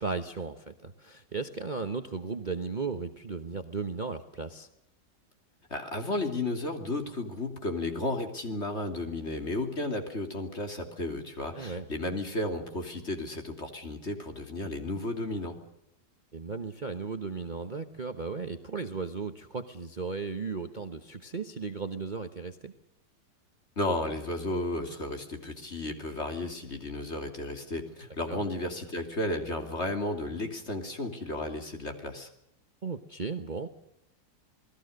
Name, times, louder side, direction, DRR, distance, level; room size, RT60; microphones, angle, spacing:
voice 1, 0.0-4.7 11.5-11.9 16.3-22.7 28.3-28.4 32.8-33.7, right 4 dB, 30° right, 8 dB, 1.1 m, -35 dB
voice 2, 5.7-15.5 23.8-32.3, left 2 dB, 40° left, 5 dB, 3.2 m, -33 dB
28.0 x 19.5 x 6.6 m, 0.80 s
omnidirectional pair, 1.8 m